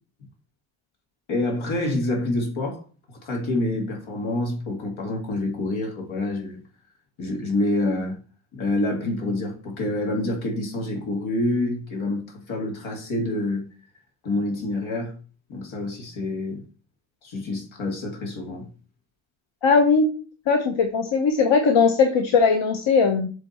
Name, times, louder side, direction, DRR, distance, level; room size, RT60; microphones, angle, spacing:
voice 1, 1.3-2.8 3.1-6.6 7.2-8.2 8.5-13.7 14.2-15.2 15.5-16.6 17.2-18.6, left 2 dB, 85° left, 2.3 m, -27 dB
voice 2, 19.6-20.1 20.5-23.3, left 5 dB, 70° left, 1.0 m, -19 dB
7.6 x 3.7 x 4.3 m
cardioid pair, 105°, 47 cm